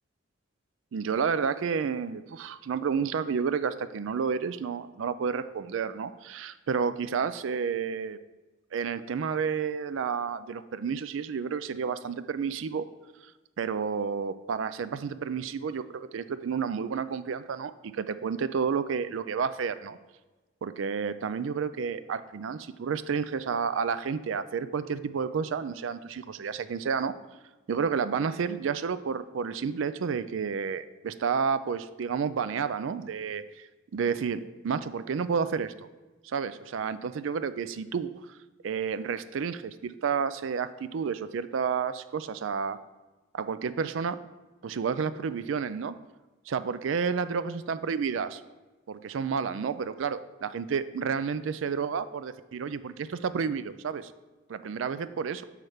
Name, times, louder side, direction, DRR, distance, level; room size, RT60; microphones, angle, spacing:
voice 1, 0.9-8.2 8.7-12.9 13.6-20.0 20.6-27.1 27.7-33.7 33.9-35.9 36.2-38.1 38.6-42.8 43.3-44.2 44.6-45.9 46.5-48.4 48.9-54.1 54.5-55.4, right 6 dB, 80° right, 13 dB, 0.4 m, -30 dB
8.5 x 3.3 x 6.4 m, 1.2 s
head